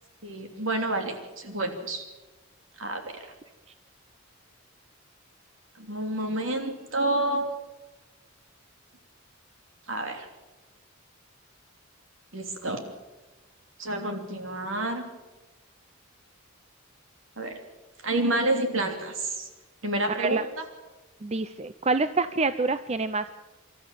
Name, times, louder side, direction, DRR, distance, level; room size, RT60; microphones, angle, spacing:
voice 1, 0.2-2.0 2.8-3.2 5.8-7.5 9.9-10.3 12.3-12.8 13.8-15.0 17.4-17.6 18.0-19.5 19.8-20.5, right 2 dB, 65° right, 4 dB, 3.1 m, -29 dB
voice 2, 21.2-23.3, right 3 dB, 30° right, 12 dB, 0.6 m, -26 dB
26.0 x 13.5 x 7.4 m, 1.2 s
head